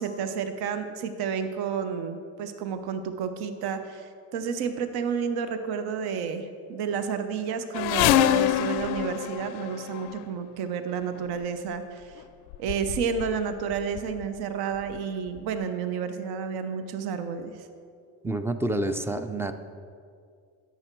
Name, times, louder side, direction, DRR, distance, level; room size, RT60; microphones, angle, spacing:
voice 1, 0.0-12.2 12.6-17.7, right 6 dB, 65° right, 9 dB, 0.8 m, -31 dB
sound 1, 7.7-10.2 11.2-11.4 12.2-12.3 12.5-13.4 13.7-14.2 14.9-15.0 15.4-15.5, left 11 dB, 80° left, 0.5 m, -25 dB
voice 2, 18.2-19.5, right 1 dB, 5° right, 10 dB, 0.3 m, -28 dB
10.5 x 6.9 x 4.5 m, 2.2 s
supercardioid pair, 95°, 41 cm